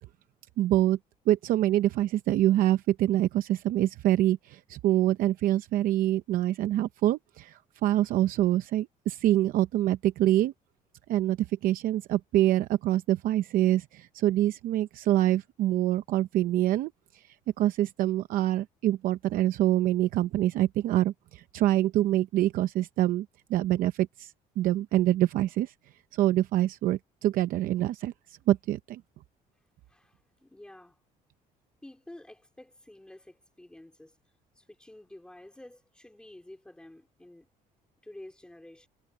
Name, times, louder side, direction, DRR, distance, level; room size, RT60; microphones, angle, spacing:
voice 1, 0.6-1.0 1.3-10.5 11.1-16.9 17.6-25.7 26.1-28.1 28.5-29.0, right 14 dB, 65° right, 0.7 m, -25 dB
voice 2, 29.9-31.0 31.8-34.2 34.5-37.5 38.0-38.9, left 1 dB, 5° left, 3.3 m, -50 dB
cardioid pair, 160°, 15 cm